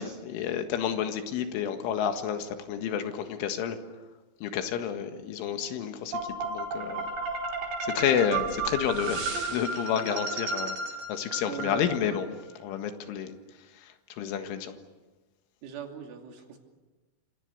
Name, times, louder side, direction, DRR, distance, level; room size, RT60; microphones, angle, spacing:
voice 1, 0.0-3.8 4.4-7.1 7.8-12.3 12.6-13.4 13.7-14.7, left 8 dB, 85° left, 7 dB, 4.2 m, -30 dB
sound 1, 6.1-12.2, right 3 dB, 55° right, 6.4 m, -33 dB
voice 2, 11.4-12.2 15.6-16.6, right 6 dB, 85° right, 3 dB, 5.3 m, -39 dB
28.5 x 27.5 x 6.8 m, 1.2 s
omnidirectional pair, 5.5 m